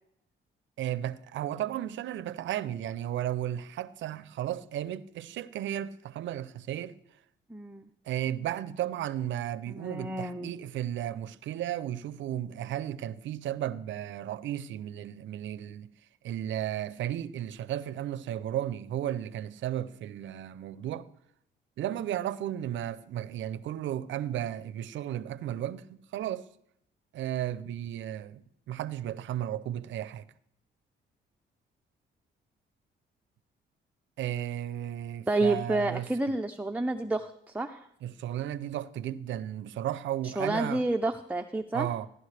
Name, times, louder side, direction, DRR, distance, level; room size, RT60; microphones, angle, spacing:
voice 1, 0.8-6.9 8.1-15.9 16.2-21.1 21.8-26.4 27.1-30.2 34.2-36.1 38.0-40.8 41.7-42.1, right 11 dB, 70° right, 0.6 m, -34 dB
voice 2, 7.5-7.9 9.7-10.5 35.3-37.9 40.2-41.9, right 2 dB, 5° right, 0.6 m, -30 dB
16.0 x 11.0 x 3.3 m
cardioid pair, 90°, 20 cm